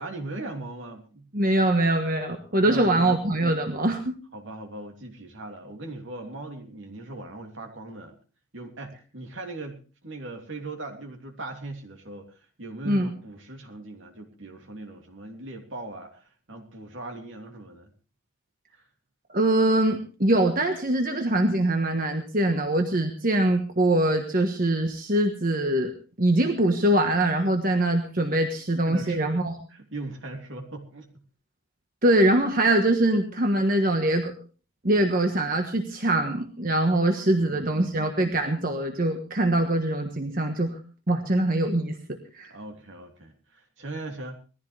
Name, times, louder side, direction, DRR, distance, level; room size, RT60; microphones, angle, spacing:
voice 1, 0.0-1.3 2.5-3.0 4.3-8.1 8.5-12.3 12.6-17.9 28.9-29.2 29.7-31.1 37.2-37.9 42.5-44.4, right 2 dB, 65° right, 3 dB, 3.0 m, -39 dB
voice 2, 1.3-4.2 12.8-13.1 19.3-25.9 26.2-29.6 32.0-34.3 34.8-40.8 41.1-42.5, right 1 dB, 40° right, 4 dB, 1.4 m, -23 dB
20.0 x 14.5 x 3.4 m, 0.36 s
head